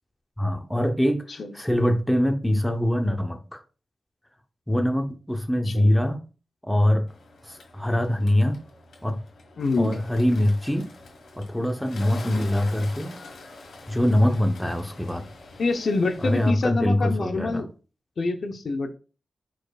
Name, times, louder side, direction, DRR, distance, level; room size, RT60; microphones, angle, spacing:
voice 1, 0.4-1.2 1.5-3.6 4.7-6.2 6.6-7.1 7.5-8.6 9.0-9.2 9.8-10.9 11.4-13.1 13.9-15.2 16.2-17.6, left 1 dB, 5° left, 0.6 m, -23 dB
Bird, 7.1-16.5, left 2 dB, 90° left, 1.4 m, -45 dB
voice 2, 9.6-9.9 15.6-17.7 18.2-18.9, left 3 dB, 60° left, 0.6 m, -26 dB
4.8 x 4.3 x 2.3 m
wide cardioid pair, 105°, 0 cm